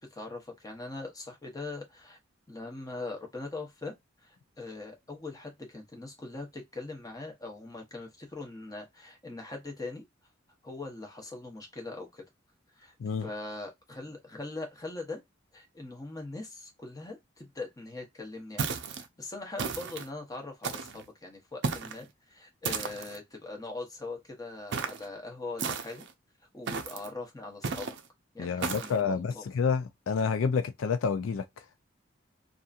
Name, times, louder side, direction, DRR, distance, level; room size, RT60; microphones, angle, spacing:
voice 1, 0.1-2.2 2.5-3.9 4.2-10.0 10.6-12.2 12.8-12.9 13.2-15.2 15.5-26.0 26.5-28.0 28.3-29.4, left 3 dB, 20° left, 0.9 m, -41 dB
sound 1, 18.6-19.1 19.6-20.1 20.6-21.0 21.6-22.0 22.6-23.2 24.7-25.1 25.6-26.1 26.7-27.1 27.6-28.0 28.6-29.0, right 5 dB, 60° right, 0.5 m, -34 dB
voice 2, 28.4-31.4, left 5 dB, 80° left, 0.4 m, -29 dB
2.8 x 2.5 x 2.4 m
head